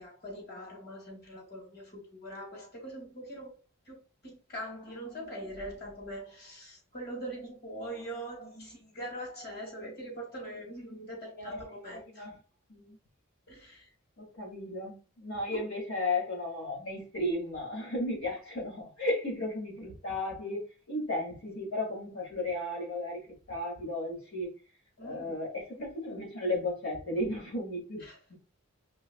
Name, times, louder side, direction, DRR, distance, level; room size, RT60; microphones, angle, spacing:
voice 1, 0.0-3.6 3.9-12.3 13.5-13.9 15.5-15.6 25.0-25.4 28.0-28.2, right 1 dB, 45° left, 1.8 m, -42 dB
voice 2, 11.4-11.7 12.1-12.3 12.7-13.0 14.2-24.5 25.0-28.0 28.3-28.4, left 1 dB, 80° left, 1.8 m, -34 dB
4.7 x 3.3 x 2.2 m
head